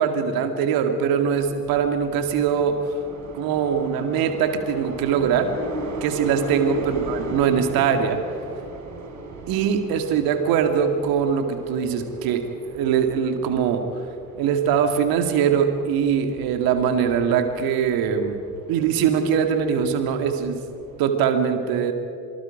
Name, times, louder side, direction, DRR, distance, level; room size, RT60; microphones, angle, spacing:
voice 1, 0.0-2.8 3.3-5.5 6.0-8.2 9.5-13.9 14.4-18.4 18.7-20.6 21.0-21.9, right 7 dB, 65° right, 7 dB, 2.2 m, -22 dB
sound 1, 1.1-21.0, right 2 dB, 45° right, 4.3 m, -38 dB
26.5 x 24.5 x 5.0 m, 2.6 s
figure-of-eight pair, 50°, 39 cm